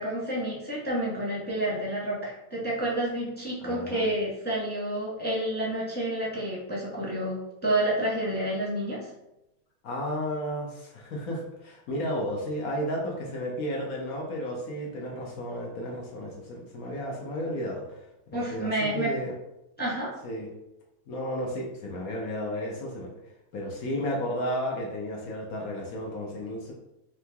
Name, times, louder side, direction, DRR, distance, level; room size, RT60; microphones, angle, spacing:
voice 1, 0.0-9.1 18.3-19.1 19.8-20.1, right 1 dB, 5° left, -7 dB, 1.0 m, -29 dB
voice 2, 3.6-4.1 9.8-18.0 18.5-19.3 20.2-20.5 21.1-23.1 23.5-26.7, equal, 60° left, -1 dB, 0.9 m, -33 dB
3.8 x 3.1 x 3.4 m, 0.88 s
omnidirectional pair, 2.3 m